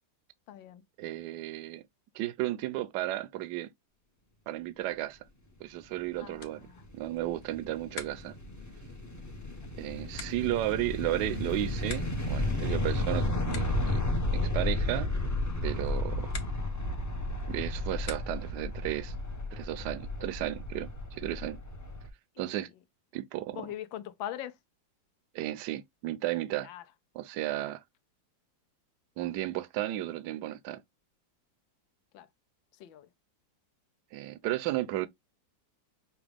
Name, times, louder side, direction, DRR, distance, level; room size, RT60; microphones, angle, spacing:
voice 1, 0.5-0.8 6.2-6.8 22.4-22.7 23.5-24.6 26.6-26.8 32.1-32.3 32.8-33.1, left 12 dB, 85° left, 1.4 m, -41 dB
voice 2, 1.0-1.8 2.1-3.7 4.5-5.2 5.6-6.7 6.9-8.3 9.7-14.1 14.3-15.1 15.6-16.2 17.5-19.1 19.5-21.6 22.4-22.7 23.1-23.7 25.3-26.7 27.1-27.8 29.2-30.8 34.1-35.1, right 15 dB, 75° right, 1.1 m, -34 dB
sound 1, 6.3-18.7, left 6 dB, 55° left, 0.7 m, -50 dB
sound 2, 6.6-22.1, left 1 dB, 25° left, 0.3 m, -33 dB
5.9 x 2.3 x 3.3 m
omnidirectional pair, 2.1 m